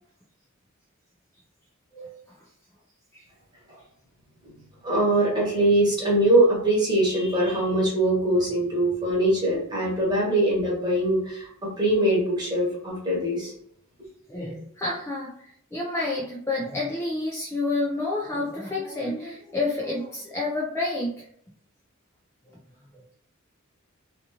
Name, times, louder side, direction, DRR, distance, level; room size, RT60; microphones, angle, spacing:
voice 1, 4.8-11.5 11.8-13.5, right 1 dB, 20° right, -5 dB, 1.1 m, -22 dB
voice 2, 14.3-21.3, left 2 dB, 15° left, -4 dB, 0.4 m, -29 dB
2.5 x 2.4 x 2.9 m, 0.70 s
head